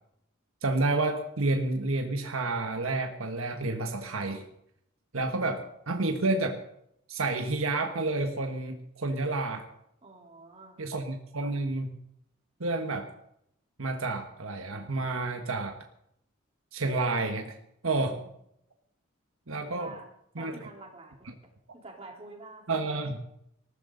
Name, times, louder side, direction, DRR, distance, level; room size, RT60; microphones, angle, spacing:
voice 1, 0.6-4.4 5.1-6.6 7.1-9.7 10.8-12.0 12.6-13.1 13.8-15.8 16.7-17.6 17.8-18.2 19.5-19.9 20.3-20.5 22.7-23.2, right 2 dB, 80° right, 4 dB, 1.4 m, -30 dB
voice 2, 10.0-10.8 17.9-18.3 19.6-20.1 20.4-21.3 21.8-22.6, right 3 dB, 30° right, -1 dB, 3.8 m, -47 dB
19.5 x 15.0 x 4.0 m, 0.75 s
head